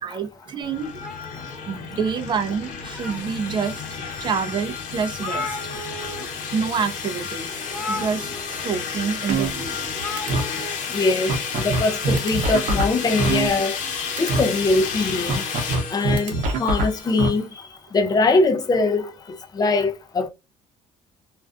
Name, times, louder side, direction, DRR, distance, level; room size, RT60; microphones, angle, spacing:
voice 1, 0.0-0.9 1.7-3.8 4.2-5.6 6.5-9.8, right 6 dB, 35° right, 0.4 m, -27 dB
sound 1, 0.6-17.4, left 6 dB, 70° left, 0.9 m, -31 dB
sound 2, 1.0-2.2 2.7-3.6 4.2-4.3 4.6-4.7 4.9-6.3 6.6-6.8 7.7-8.7 9.9-10.8, left 2 dB, ahead, 0.8 m, -35 dB
sound 3, 9.3-9.9 10.2-10.4 10.9-11.0 11.3-13.9 14.2-14.4 15.3-17.3, right 3 dB, 65° right, 0.8 m, -23 dB
voice 2, 10.9-13.8 14.2-15.4 15.9-16.3 16.6-17.5 17.9-19.1 19.6-20.3, left 3 dB, 30° left, 0.5 m, -22 dB
2.4 x 2.2 x 2.4 m
cardioid pair, 105°, 14 cm